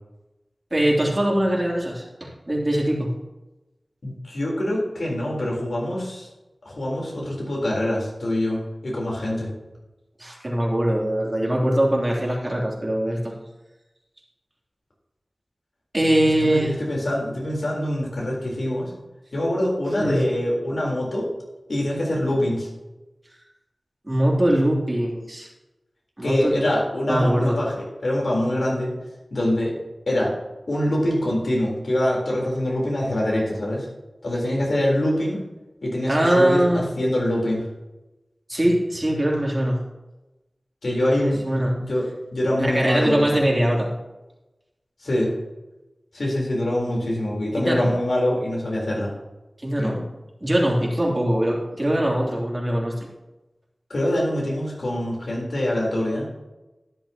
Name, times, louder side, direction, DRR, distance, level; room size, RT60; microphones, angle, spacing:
voice 1, 0.7-3.1 10.2-13.3 15.9-16.7 20.0-20.2 24.0-25.5 26.2-26.6 27.1-27.6 36.1-36.8 38.5-39.8 41.2-41.8 42.6-43.9 47.6-47.9 49.6-50.0 50.4-53.1, right 1 dB, 30° right, -3 dB, 3.0 m, -22 dB
voice 2, 4.0-6.3 6.7-9.5 16.4-18.9 19.3-21.3 21.7-22.7 26.2-28.9 29.3-29.8 30.1-30.3 30.7-33.9 34.2-35.4 35.8-37.6 40.8-41.4 41.8-43.4 45.0-45.3 46.1-49.1 49.7-50.0 53.9-56.3, left 1 dB, 80° left, -3 dB, 3.8 m, -24 dB
12.0 x 10.5 x 2.9 m, 1.0 s
wide cardioid pair, 60°, 0 cm